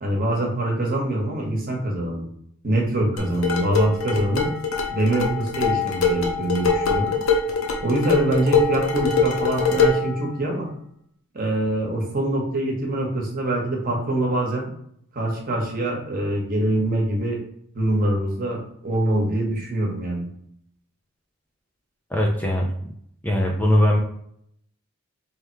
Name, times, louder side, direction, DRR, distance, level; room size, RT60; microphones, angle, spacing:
voice 1, 0.0-2.3 2.6-4.5 4.9-7.1 7.8-10.7 11.3-14.7 15.1-17.4 17.7-20.3, right 1 dB, 40° right, -1 dB, 1.1 m, -24 dB
sound 1, 3.2-10.1, left 4 dB, 70° left, 0.7 m, -23 dB
voice 2, 22.1-22.9 23.2-24.0, left 1 dB, 10° left, -1 dB, 0.4 m, -20 dB
3.3 x 2.8 x 4.4 m, 0.69 s
head